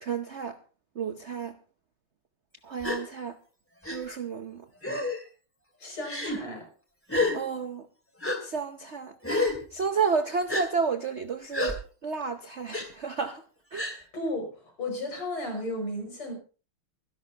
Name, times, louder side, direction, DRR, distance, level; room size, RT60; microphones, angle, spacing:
voice 1, 0.0-0.6 0.9-1.6 2.6-3.4 3.8-4.7 7.3-7.9 8.4-9.2 9.7-13.4 13.7-13.9, right 5 dB, 75° right, 0.6 m, -31 dB
Gasp, 2.8-3.0 3.8-4.0 4.8-5.2 6.0-6.4 7.1-7.4 8.2-8.4 9.2-9.6 10.5-10.6 11.5-11.7 12.7-12.9 13.7-14.0, left 2 dB, 5° left, 2.3 m, -28 dB
voice 2, 5.8-6.7 14.1-16.3, left 1 dB, 80° left, 7.1 m, -34 dB
24.5 x 11.0 x 2.9 m
omnidirectional pair, 2.4 m